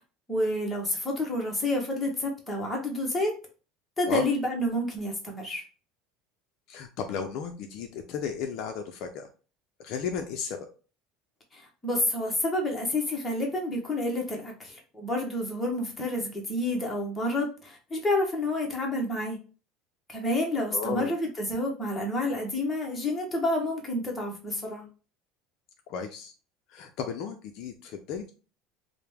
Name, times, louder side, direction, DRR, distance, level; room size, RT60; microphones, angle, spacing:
voice 1, 0.3-3.4 4.0-5.6 11.5-19.4 20.1-24.9, left 1 dB, 5° left, -1 dB, 0.8 m, -29 dB
voice 2, 6.7-9.3 9.8-10.6 20.7-21.1 25.9-26.3 26.7-28.3, left 6 dB, 45° left, 5 dB, 0.4 m, -34 dB
4.8 x 2.0 x 3.4 m, 0.36 s
cardioid pair, 180°, 0 cm